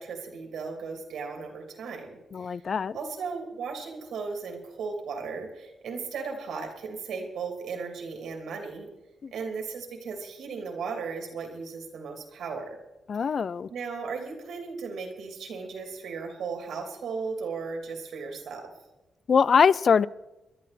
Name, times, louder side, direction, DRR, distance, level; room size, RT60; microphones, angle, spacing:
voice 1, 0.0-2.6 2.9-8.9 9.3-12.8 13.7-18.7, right 5 dB, 80° right, 2.8 m, -36 dB
voice 2, 2.3-3.0 9.2-9.3 13.1-13.7 19.3-20.1, left 6 dB, 55° left, 0.4 m, -22 dB
25.0 x 11.0 x 4.2 m
cardioid pair, 65°, 0 cm